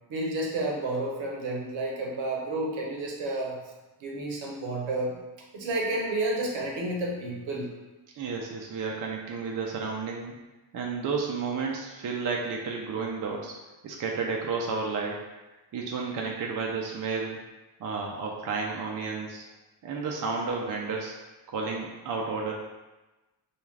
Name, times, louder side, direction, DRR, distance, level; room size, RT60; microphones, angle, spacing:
voice 1, 0.1-3.6 4.0-5.2 5.5-7.7, right 2 dB, 70° right, -1 dB, 0.8 m, -30 dB
voice 2, 8.2-10.3 10.7-13.5 13.8-15.2 15.7-17.4 17.8-19.4 19.8-21.1 21.5-22.5, right 4 dB, 45° right, -1 dB, 0.4 m, -31 dB
2.4 x 2.3 x 3.2 m, 1.1 s
cardioid pair, 75°, 48 cm